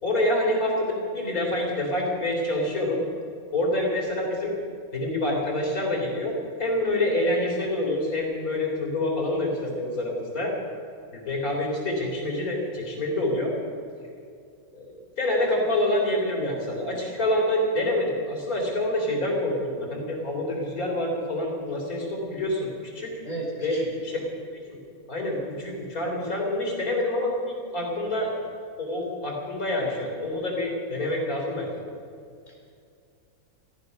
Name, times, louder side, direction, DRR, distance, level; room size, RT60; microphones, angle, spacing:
voice 1, 0.0-3.0 3.5-4.5 4.9-10.5 11.1-13.5 14.7-14.9 15.2-23.1 23.6-24.2 24.7-24.8 25.1-28.3 28.8-31.7, left 1 dB, 75° left, -1 dB, 4.3 m, -27 dB
voice 2, 23.2-23.9 32.5-32.6, right 2 dB, 30° left, -2 dB, 4.1 m, -34 dB
17.5 x 14.5 x 5.4 m, 2.4 s
omnidirectional pair, 1.5 m